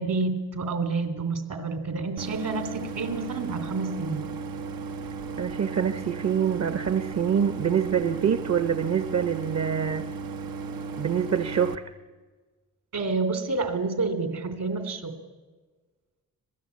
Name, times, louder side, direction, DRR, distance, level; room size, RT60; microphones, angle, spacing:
voice 1, 0.0-4.2 12.9-15.2, right 3 dB, 70° right, 9 dB, 3.3 m, -29 dB
Idling, 2.2-11.7, right 5 dB, 90° right, 1.1 m, -35 dB
voice 2, 5.4-10.1 11.0-11.8, right 8 dB, 50° right, 10 dB, 0.9 m, -25 dB
26.0 x 18.0 x 8.5 m, 1.4 s
cardioid pair, 90°, 34 cm